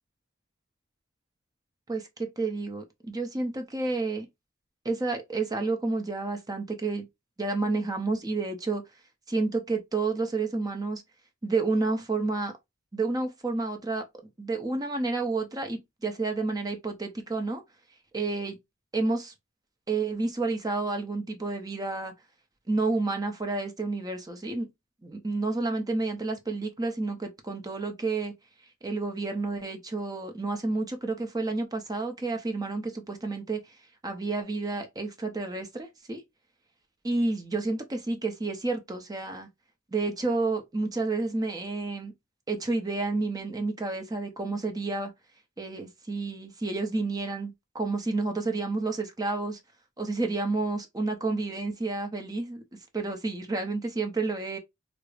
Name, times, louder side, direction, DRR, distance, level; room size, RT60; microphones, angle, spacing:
voice 1, 1.9-4.3 4.8-7.1 7.4-8.8 9.3-11.0 11.4-12.5 12.9-14.0 14.4-17.6 18.1-18.6 18.9-19.3 19.9-22.1 22.7-24.7 25.0-28.3 28.8-33.8 34.0-36.2 37.0-39.5 39.9-42.1 42.5-45.1 45.6-49.6 50.0-52.6 52.9-54.6, right 3 dB, 20° right, 0.5 m, -30 dB
4.7 x 2.0 x 2.4 m
head